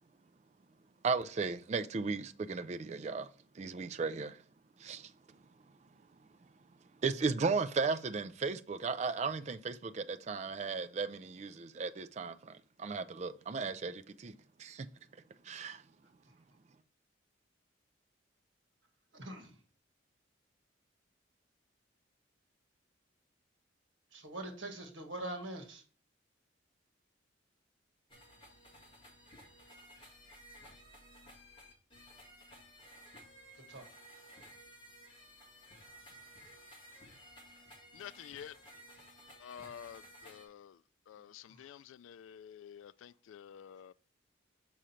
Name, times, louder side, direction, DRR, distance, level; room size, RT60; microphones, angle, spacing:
voice 1, 1.0-3.3 3.6-4.4 4.8-5.1 7.0-14.3 14.6-14.9 15.4-15.8, right 4 dB, 35° right, 0.3 m, -35 dB
voice 2, 19.1-19.5 24.1-25.8 33.7-33.9 41.2-41.7, right 1 dB, 75° right, 1.6 m, -44 dB
sound 1, 28.1-40.5, equal, 25° left, 2.0 m, -56 dB
voice 3, 37.9-38.8 39.4-43.9, left 9 dB, 85° left, 0.3 m, -50 dB
6.3 x 5.0 x 4.3 m
head